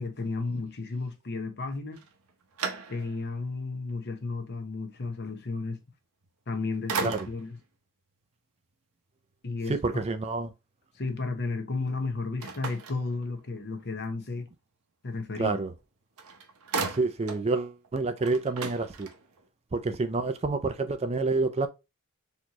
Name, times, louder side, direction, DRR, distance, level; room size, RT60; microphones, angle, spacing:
voice 1, 0.0-2.0 2.9-5.8 6.5-7.6 9.4-9.8 10.9-14.5 15.0-15.6, left 3 dB, 50° left, 0.9 m, -33 dB
sound 1, 1.9-3.4 3.9-4.0 6.2-6.6 6.9-7.6 12.4-13.7 15.8-15.9 16.2-17.5 17.8-17.9 18.2-19.5, right 4 dB, 75° right, 0.8 m, -36 dB
voice 2, 9.7-10.5 15.4-15.7 16.9-19.1 19.7-21.7, right 3 dB, 30° right, 0.4 m, -28 dB
4.3 x 2.9 x 2.9 m
head